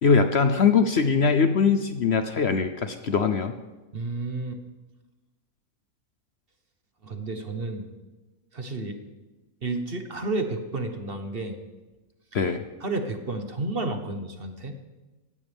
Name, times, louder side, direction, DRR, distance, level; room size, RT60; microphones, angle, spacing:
voice 1, 0.0-3.5 12.3-12.6, left 5 dB, 55° left, 8 dB, 0.9 m, -21 dB
voice 2, 3.9-4.6 7.0-7.9 8.5-9.0 9.6-11.6 12.8-14.7, right 2 dB, 40° right, 6 dB, 1.4 m, -31 dB
18.5 x 15.5 x 3.6 m, 1.1 s
omnidirectional pair, 1.5 m